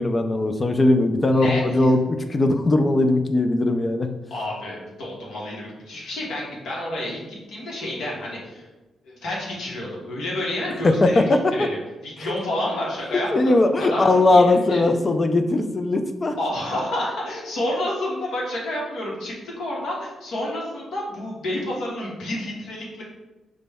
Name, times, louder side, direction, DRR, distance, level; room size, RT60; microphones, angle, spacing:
voice 1, 0.0-4.1 10.8-11.7 13.1-16.4, left 2 dB, 25° left, 7 dB, 0.3 m, -19 dB
voice 2, 1.3-1.9 4.3-7.2 7.5-8.6 9.1-11.8 12.0-14.8 16.4-23.0, left 1 dB, 80° left, -3 dB, 1.1 m, -29 dB
5.0 x 2.2 x 3.4 m, 1.1 s
cardioid pair, 115°, 0 cm